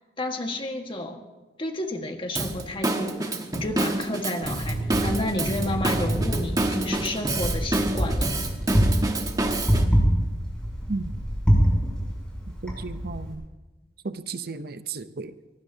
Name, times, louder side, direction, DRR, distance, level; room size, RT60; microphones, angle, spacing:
voice 1, 0.2-1.2 1.6-8.3, left 1 dB, 30° left, 4 dB, 1.6 m, -31 dB
Drum kit / Drum, 2.3-9.8, right 2 dB, 20° right, 1.2 m, -28 dB
Wind, 4.4-13.3, equal, 5° left, 6.2 m, -26 dB
voice 2, 12.6-13.5 14.0-15.3, right 3 dB, 55° right, 11 dB, 0.7 m, -34 dB
24.5 x 19.0 x 2.8 m, 1.2 s
head